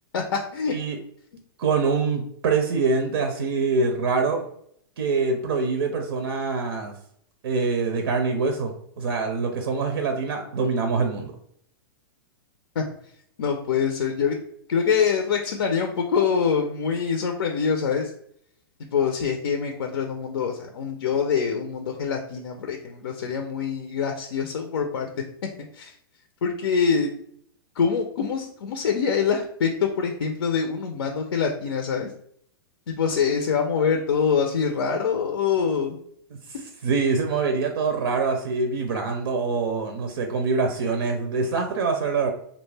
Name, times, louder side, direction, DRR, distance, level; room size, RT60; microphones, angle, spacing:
voice 1, 0.1-0.7 12.8-12.9 13.4-14.4 14.7-18.1 18.9-25.1 25.7-25.9 26.4-27.1 27.8-32.1 32.9-36.0, left 6 dB, 85° left, 4 dB, 0.5 m, -24 dB
voice 2, 0.7-1.0 1.6-4.4 5.0-6.9 7.4-11.3 36.8-42.3, right 4 dB, 75° right, 5 dB, 0.5 m, -24 dB
2.4 x 2.1 x 3.2 m, 0.66 s
hypercardioid pair, 140°, 13 cm